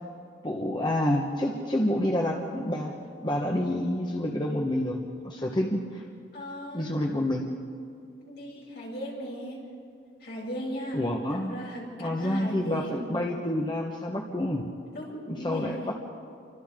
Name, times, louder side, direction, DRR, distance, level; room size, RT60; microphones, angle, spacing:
voice 1, 0.4-2.9 3.2-6.0 6.7-7.4 10.9-11.5 12.0-14.6 15.3-15.9, left 1 dB, 25° left, 0 dB, 1.4 m, -28 dB
voice 2, 6.3-7.0 8.2-9.7 10.2-13.1 14.9-15.9, equal, 65° left, -4 dB, 8.0 m, -37 dB
29.5 x 25.5 x 3.9 m, 2.4 s
head